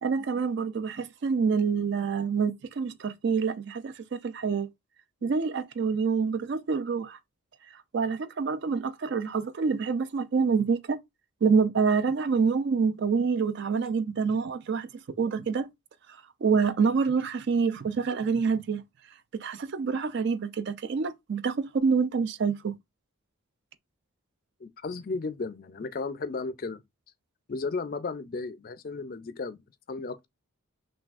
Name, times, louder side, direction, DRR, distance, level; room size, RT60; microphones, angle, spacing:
voice 1, 0.0-4.7 5.2-7.2 7.7-11.0 11.4-15.7 16.4-18.8 19.3-22.7, right 5 dB, 50° right, 0.4 m, -27 dB
voice 2, 24.6-26.8 27.5-30.3, left 3 dB, 40° left, 0.4 m, -34 dB
5.9 x 2.3 x 2.4 m
head